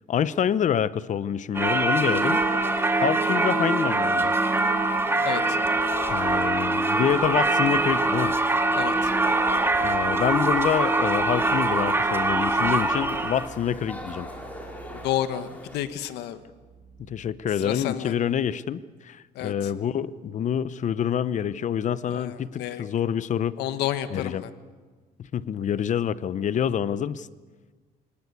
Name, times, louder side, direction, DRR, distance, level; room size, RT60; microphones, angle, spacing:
voice 1, 0.1-2.4 3.0-4.3 6.1-8.3 9.8-14.3 17.1-23.5 24.1-24.4 25.3-27.3, left 9 dB, 45° left, 17 dB, 0.8 m, -27 dB
Singing / Church bell, 1.5-13.5, right 2 dB, 15° right, 2.0 m, -23 dB
sound 1, 4.6-15.8, left 1 dB, 10° left, 4.4 m, -42 dB
sound 2, 7.9-17.9, right 7 dB, 90° right, 6.2 m, -50 dB
voice 2, 8.7-9.1 15.0-16.4 17.6-18.1 19.3-19.7 22.1-22.8 23.6-24.5, left 12 dB, 85° left, 11 dB, 1.4 m, -30 dB
24.5 x 19.0 x 8.3 m, 1.4 s
cardioid pair, 110°, 17 cm